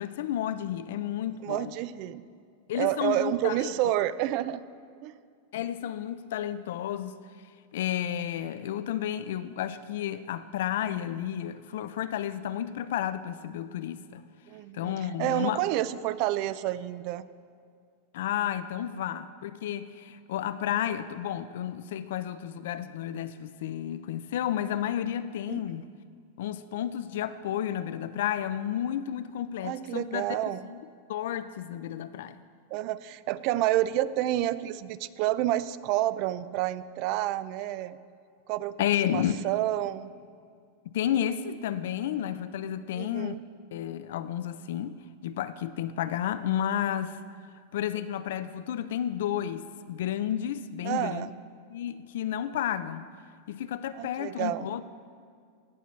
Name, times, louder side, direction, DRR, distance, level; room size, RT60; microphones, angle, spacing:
voice 1, 0.0-1.7 2.7-3.8 5.5-7.2 7.7-14.2 14.7-15.6 18.1-25.9 26.4-30.8 31.1-32.4 38.8-39.4 40.8-43.4 43.7-47.2 47.7-51.3 51.7-53.0 53.5-54.8, left 10 dB, 75° left, 0.4 m, -32 dB
voice 2, 1.4-2.2 2.7-4.6 5.0-5.1 14.5-14.9 15.2-17.3 25.5-25.6 29.6-30.6 32.7-38.0 38.5-38.7 39.0-40.1 42.9-43.4 50.8-51.3 53.9-54.7, right 14 dB, 50° right, 0.3 m, -29 dB
16.5 x 6.7 x 3.2 m
supercardioid pair, 135°, 0 cm